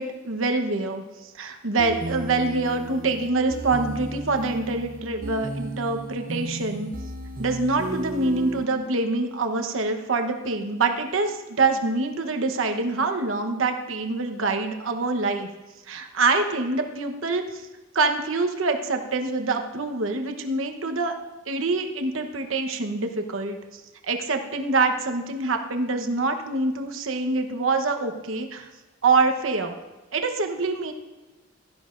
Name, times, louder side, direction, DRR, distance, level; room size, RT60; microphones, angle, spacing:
voice 1, 0.0-6.9 7.4-15.5 15.9-17.6 17.9-21.1 21.5-23.6 24.1-28.7 29.0-29.7 30.1-30.9, right 3 dB, 75° right, 5 dB, 1.1 m, -25 dB
sound 1, 1.8-8.6, right 2 dB, 45° right, 0.8 m, -34 dB
16.5 x 12.5 x 2.6 m, 1.1 s
head